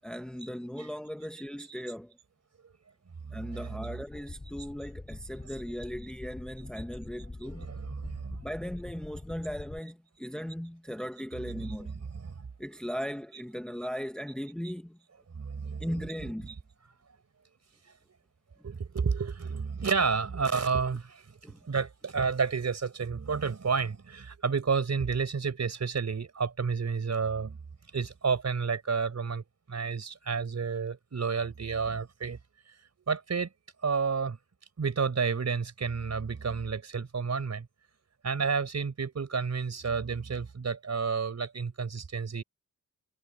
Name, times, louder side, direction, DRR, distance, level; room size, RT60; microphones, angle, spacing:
voice 1, 0.0-2.1 3.3-7.7 8.4-12.0 12.6-15.0 15.8-16.6 21.4-21.6, equal, ahead, 1.0 m, -38 dB
voice 2, 3.3-3.6 7.6-8.4 11.6-11.7 12.1-12.5 15.3-15.8 18.6-21.2 21.6-27.6 27.9-32.4 33.1-33.5 33.8-34.4 34.8-37.7 38.2-42.4, right 5 dB, 50° right, 4.6 m, -30 dB
sound 1, 4.1-9.8, left 2 dB, 20° left, 2.1 m, -44 dB
wide cardioid pair, 135°, 36 cm